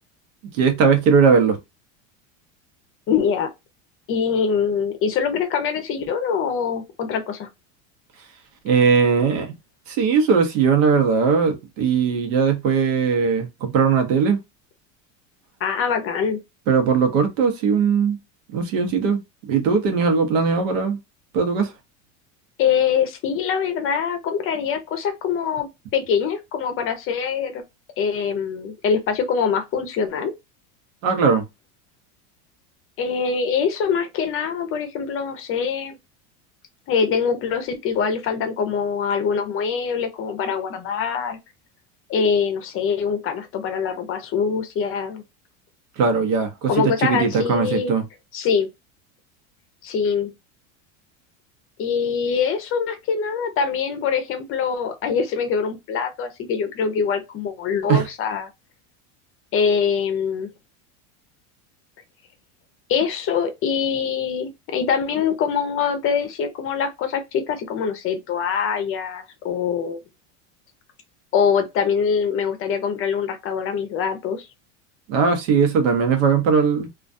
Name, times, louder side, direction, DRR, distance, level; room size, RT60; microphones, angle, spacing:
voice 1, 0.5-1.6 8.6-9.5 9.9-14.4 16.7-18.2 18.5-19.2 19.5-21.0 21.3-21.7 31.0-31.4 46.0-48.0 57.9-58.1 75.1-76.9, right 5 dB, 85° right, 0.9 m, -19 dB
voice 2, 3.1-3.5 4.1-7.5 15.6-16.4 22.6-25.7 25.9-27.6 28.0-30.3 33.0-36.0 36.9-41.4 42.1-45.2 46.7-47.9 48.3-48.7 49.8-50.3 51.8-58.5 59.5-60.5 62.9-70.0 71.3-74.5, left 6 dB, 35° left, 0.5 m, -23 dB
2.4 x 2.2 x 2.5 m
supercardioid pair, 130°, 38 cm